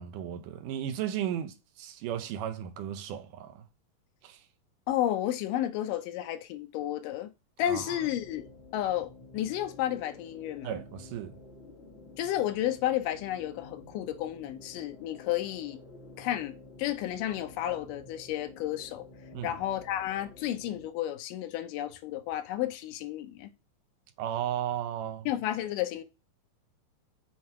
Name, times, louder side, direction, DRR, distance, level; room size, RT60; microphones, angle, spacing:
voice 1, 0.0-3.6 4.2-4.4 7.7-8.0 10.6-11.3 19.3-19.5 24.2-25.3, right 10 dB, 80° right, 2.3 m, -35 dB
voice 2, 4.9-7.3 7.6-8.5 8.7-10.8 12.2-15.8 16.2-19.1 19.4-23.5 25.3-26.0, left 12 dB, 90° left, 2.4 m, -32 dB
sound 1, 7.7-20.9, left 2 dB, 45° left, 0.8 m, -51 dB
7.7 x 2.9 x 4.2 m
omnidirectional pair, 3.7 m